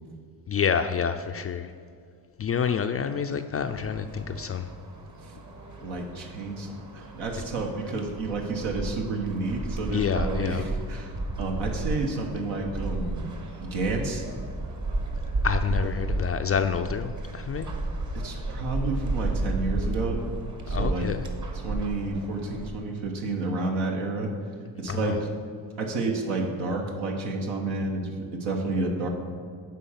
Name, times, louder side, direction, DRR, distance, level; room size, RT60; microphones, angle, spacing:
voice 1, 0.5-1.7 2.4-4.7 7.3-7.4 9.9-10.6 15.4-17.7 20.7-21.3 24.9-25.2, left 7 dB, 35° left, 7 dB, 0.4 m, -28 dB
sound 1, 3.6-22.7, right 2 dB, 40° right, 1.2 m, -33 dB
voice 2, 5.8-13.3 13.6-14.2 18.1-20.2 20.7-21.1 21.6-24.3 24.8-25.3 25.8-29.1, right 3 dB, 75° right, 1 dB, 1.2 m, -30 dB
9.2 x 3.8 x 5.7 m, 2.2 s
supercardioid pair, 65°, 47 cm